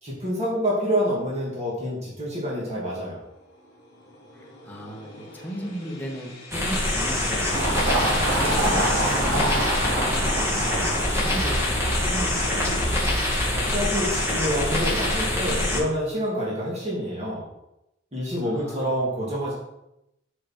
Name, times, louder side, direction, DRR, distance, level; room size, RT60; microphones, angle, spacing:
voice 1, 0.0-3.2 13.5-17.4 18.1-19.5, equal, 35° right, -5 dB, 2.5 m, -27 dB
sound 1, 2.9-12.9, left 2 dB, 55° left, 2.8 m, -43 dB
voice 2, 4.3-10.8 11.1-12.8 18.4-18.9, right 1 dB, 10° left, -2 dB, 1.6 m, -36 dB
sound 2, 6.5-15.8, left 1 dB, 15° right, 2.3 m, -25 dB
sound 3, 7.5-14.4, right 1 dB, 85° right, 3.1 m, -27 dB
7.3 x 6.4 x 4.5 m, 0.86 s
head